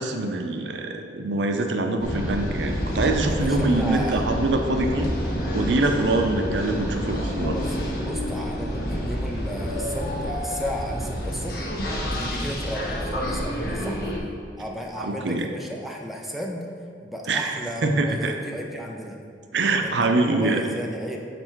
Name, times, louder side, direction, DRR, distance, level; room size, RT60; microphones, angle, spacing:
voice 1, 0.0-5.1 5.5-7.6 15.0-15.5 17.3-18.3 19.5-20.6, right 2 dB, 90° right, 5 dB, 0.6 m, -24 dB
sound 1, 2.0-14.2, equal, 60° left, 1.2 m, -28 dB
voice 2, 3.3-4.2 7.4-11.7 12.0-14.1 14.6-16.7 17.0-19.2 19.8-21.2, equal, ahead, -1 dB, 0.6 m, -34 dB
6.7 x 4.3 x 4.5 m, 2.4 s
head